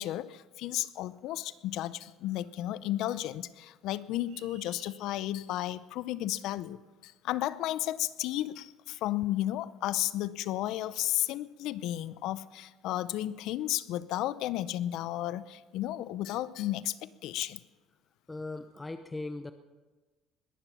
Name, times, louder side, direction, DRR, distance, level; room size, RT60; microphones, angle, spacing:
voice 1, 0.0-17.6, left 14 dB, 70° left, 17 dB, 0.6 m, -33 dB
sound 1, 4.3-5.0, right 6 dB, 70° right, 6.5 m, -56 dB
voice 2, 18.3-19.5, left 2 dB, 15° left, 9 dB, 0.7 m, -39 dB
21.5 x 11.0 x 5.9 m, 1.3 s
supercardioid pair, 100°, 0 cm